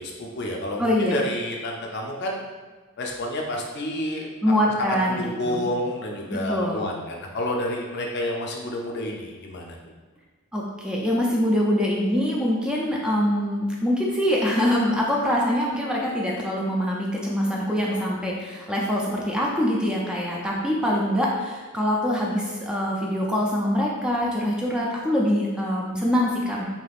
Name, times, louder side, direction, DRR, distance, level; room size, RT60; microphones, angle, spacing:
voice 1, 0.0-2.4 3.0-4.3 4.6-9.8, left 1 dB, 55° left, 0 dB, 0.5 m, -29 dB
voice 2, 0.8-1.2 4.4-5.2 5.5-5.6 6.3-6.9 10.5-26.6, equal, 5° right, -3 dB, 0.4 m, -24 dB
3.4 x 2.8 x 2.4 m, 1.4 s
head